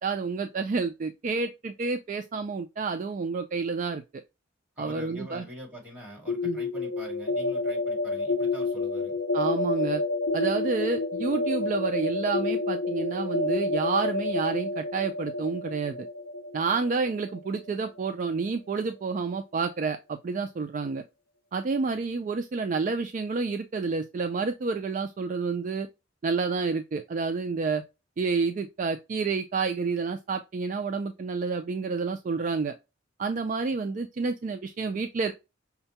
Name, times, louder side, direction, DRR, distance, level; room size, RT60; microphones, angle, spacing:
voice 1, 0.0-4.0 4.8-5.4 6.4-6.6 9.3-10.0 10.3-16.1 16.5-21.0 21.5-25.9 26.2-27.8 28.2-32.7 33.2-35.3, right 4 dB, 40° right, 0.3 m, -29 dB
voice 2, 4.8-9.1, left 1 dB, 10° right, 1.8 m, -44 dB
Sounds like rain, 6.3-18.0, left 2 dB, 50° left, 0.8 m, -29 dB
5.6 x 2.1 x 2.7 m
head